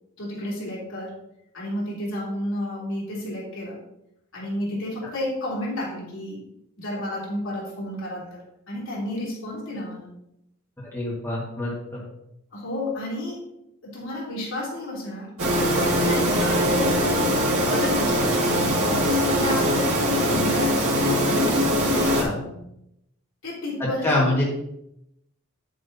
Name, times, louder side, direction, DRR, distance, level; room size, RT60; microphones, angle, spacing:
voice 1, 0.2-1.2 1.5-3.8 4.3-6.4 6.8-10.1 12.5-13.4 13.8-15.3 16.1-20.9 21.2-22.5 23.4-24.4, left 1 dB, 65° left, -4 dB, 3.3 m, -31 dB
voice 2, 10.8-12.0 22.1-22.3 23.8-24.4, left 1 dB, 10° left, -5 dB, 1.6 m, -25 dB
sound 1, 15.4-22.2, equal, 85° right, 1.8 m, -22 dB
9.2 x 7.6 x 2.7 m, 0.82 s
head